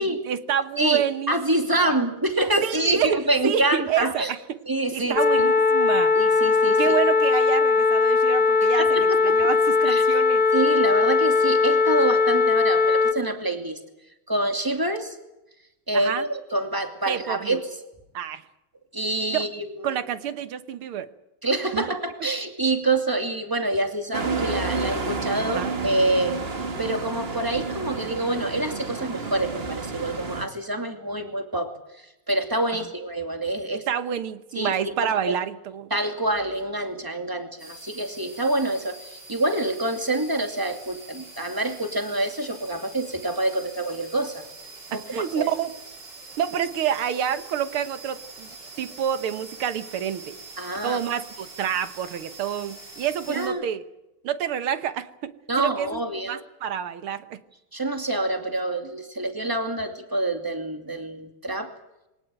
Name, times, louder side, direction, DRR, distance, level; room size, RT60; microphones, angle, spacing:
voice 1, 0.3-1.4 1.8-2.0 2.6-4.4 4.9-6.1 6.8-10.4 15.9-16.3 17.1-17.6 18.1-18.4 19.3-19.5 19.8-21.1 21.7-21.8 25.5-25.7 33.9-35.9 44.9-45.7 46.4-48.5 48.8-50.3 50.8-53.8 54.2-56.0 56.3-57.4, right 9 dB, 75° right, 12 dB, 2.0 m, -28 dB
voice 2, 0.8-4.3 4.7-5.5 6.1-7.0 8.8-9.5 9.8-10.0 10.5-13.8 14.3-15.2 15.9-17.7 18.9-20.0 21.4-26.4 26.8-31.7 32.3-33.9 34.5-35.4 35.9-44.4 44.9-45.5 50.6-51.0 53.3-53.6 55.5-56.4 57.7-61.7, right 2 dB, 10° right, 6 dB, 2.3 m, -26 dB
sound 1, 5.2-13.1, left 4 dB, 40° left, 0.8 m, -19 dB
sound 2, 24.1-30.5, right 4 dB, 30° right, 1.6 m, -30 dB
sound 3, 37.6-53.5, right 3 dB, 50° right, 5.7 m, -44 dB
23.0 x 18.5 x 9.0 m, 0.93 s
omnidirectional pair, 2.4 m